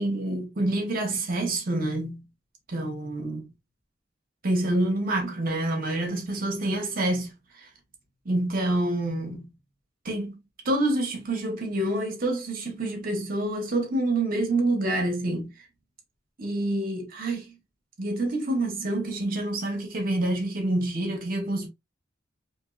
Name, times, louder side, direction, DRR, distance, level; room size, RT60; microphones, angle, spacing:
voice 1, 0.0-2.2 2.7-3.5 4.4-7.7 8.2-9.5 10.0-10.4 10.6-15.5 16.4-17.5 18.0-21.7, right 1 dB, 50° right, 1.1 m, -27 dB
4.4 x 2.8 x 2.4 m
head